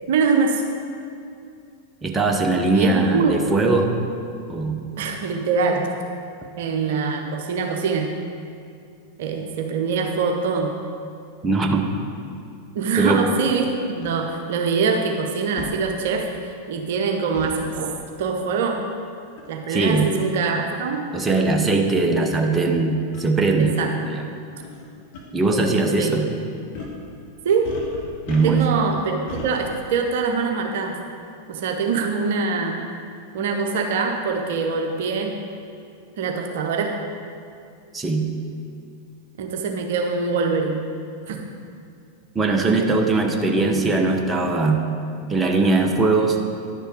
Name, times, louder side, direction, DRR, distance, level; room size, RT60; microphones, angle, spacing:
voice 1, 0.1-0.6 2.7-3.4 5.0-5.9 6.6-8.1 9.2-10.7 12.7-18.8 19.5-21.1 23.6-23.9 26.0-26.1 27.4-27.8 28.4-31.0 31.5-32.9 33.3-35.3 36.2-37.0 39.4-40.8 41.3-41.4, right 5 dB, 55° right, 3 dB, 0.8 m, -23 dB
voice 2, 2.0-3.9 4.5-4.8 11.4-11.9 13.0-13.3 19.7-20.1 21.1-23.7 24.0-24.3 25.3-26.3 28.3-28.7 37.9-38.3 42.3-44.8 45.3-46.4, right 3 dB, 15° right, 3 dB, 1.0 m, -20 dB
sound 1, 14.0-14.1 15.6-15.7 17.3-17.6 19.4-19.6 20.4-20.5 21.3-21.4 21.7-21.8 23.1-23.3 24.6-24.8 25.1-25.2 26.7-27.0 27.6-28.8 29.3-29.5, left 3 dB, 50° left, 1.9 m, -37 dB
10.5 x 6.8 x 4.7 m, 2.4 s
figure-of-eight pair, 90°, 0 cm